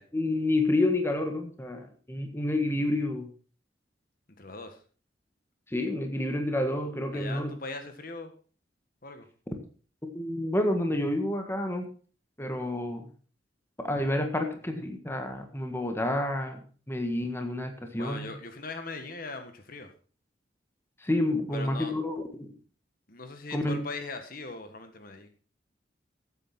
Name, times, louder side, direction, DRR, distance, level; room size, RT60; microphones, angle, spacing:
voice 1, 0.1-3.3 5.7-7.5 10.0-11.9 12.4-13.1 13.8-18.3 21.0-22.5 23.5-23.8, left 1 dB, 15° left, 4 dB, 1.6 m, -29 dB
voice 2, 4.4-4.8 7.1-8.3 9.0-9.3 18.0-19.9 21.5-22.0 23.1-25.3, left 3 dB, 50° left, 7 dB, 1.6 m, -40 dB
14.5 x 8.4 x 4.3 m, 0.40 s
head